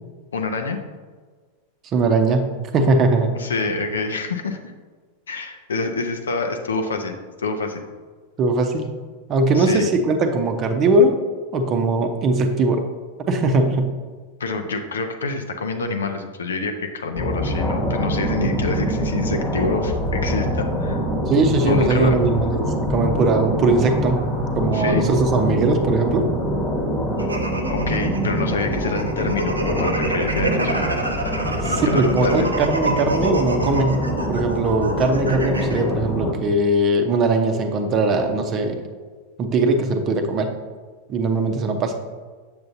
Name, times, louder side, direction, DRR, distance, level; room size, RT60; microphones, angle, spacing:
voice 1, 0.3-0.8 3.3-4.6 5.3-7.8 9.5-9.9 14.4-21.0 21.6-22.2 24.7-25.1 27.7-31.0 31.7-32.5, left 3 dB, 70° left, 6 dB, 0.7 m, -27 dB
voice 2, 1.9-3.4 8.4-8.9 9.3-11.2 11.5-12.8 13.2-13.9 18.4-18.6 21.3-26.2 31.6-38.8 39.4-40.5 41.1-41.9, right 2 dB, 30° right, 5 dB, 0.8 m, -20 dB
sound 1, 17.2-36.3, equal, 25° left, 1.2 m, -25 dB
sound 2, 27.2-35.8, right 1 dB, 80° right, 0.7 m, -28 dB
7.6 x 7.1 x 2.7 m, 1.5 s
figure-of-eight pair, 90°, 0 cm